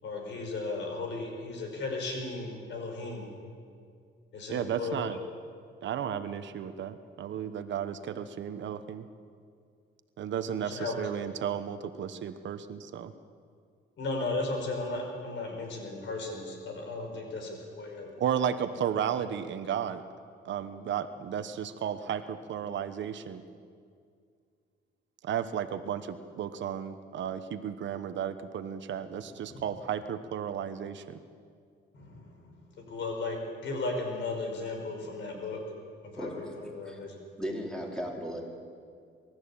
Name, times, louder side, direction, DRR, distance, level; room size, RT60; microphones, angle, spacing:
voice 1, 0.0-3.3 4.3-5.1 10.7-10.9 14.0-18.1 31.9-32.5 32.9-35.6 36.0-37.1, left 3 dB, 65° left, 2 dB, 5.6 m, -35 dB
voice 2, 4.5-5.2 5.8-9.0 10.2-13.1 18.2-20.0 20.4-23.4 25.2-31.2, right 8 dB, 70° right, 10 dB, 1.1 m, -33 dB
voice 3, 37.4-38.4, equal, 5° left, -1 dB, 4.6 m, -35 dB
23.5 x 13.5 x 8.8 m, 2.2 s
cardioid pair, 90°, 20 cm